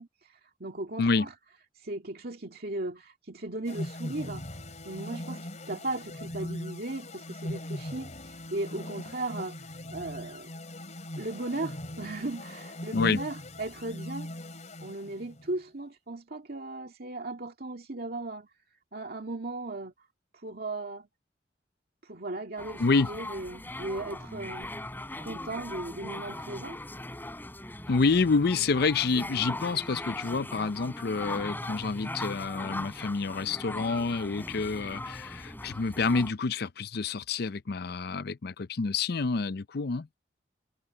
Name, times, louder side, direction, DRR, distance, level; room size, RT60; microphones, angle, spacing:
voice 1, 0.0-1.3 1.8-4.5 4.8-9.6 9.9-10.5 11.2-14.3 14.8-18.5 18.9-19.9 20.3-21.1 22.0-24.7 25.2-26.8, right 2 dB, 55° right, 2.1 m, -37 dB
sound 1, 3.7-15.5, left 1 dB, 40° left, 4.1 m, -40 dB
sound 2, 22.6-36.3, left 1 dB, 10° left, 7.0 m, -39 dB
voice 2, 27.9-40.1, left 4 dB, 60° left, 0.6 m, -28 dB
head